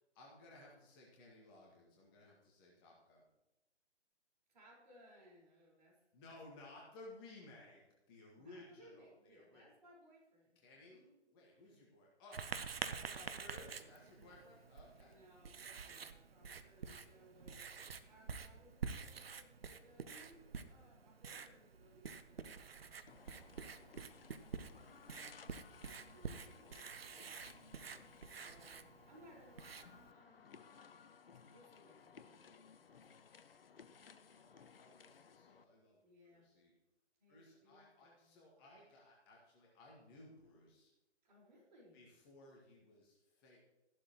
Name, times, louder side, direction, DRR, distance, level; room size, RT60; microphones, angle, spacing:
voice 1, 0.0-3.2 6.1-7.8 8.1-9.7 10.6-11.0 11.3-12.5 13.1-15.2 34.2-36.7 37.3-40.9 41.9-43.6, left 2 dB, 20° left, -3 dB, 2.0 m, -59 dB
voice 2, 4.5-6.0 6.3-6.4 8.4-10.6 10.9-11.1 11.5-11.7 12.8-13.8 14.1-14.4 15.0-25.0 25.7-27.7 28.3-30.7 31.5-33.0 34.7-34.8 36.0-36.5 37.2-38.4 41.2-42.0, equal, 40° right, -2 dB, 5.0 m, -65 dB
Writing, 12.3-30.1, right 5 dB, 55° right, 0.9 m, -49 dB
sound 1, 23.1-35.6, left 6 dB, 55° left, 0.8 m, -60 dB
13.5 x 11.5 x 3.1 m, 0.96 s
figure-of-eight pair, 140°, 35 cm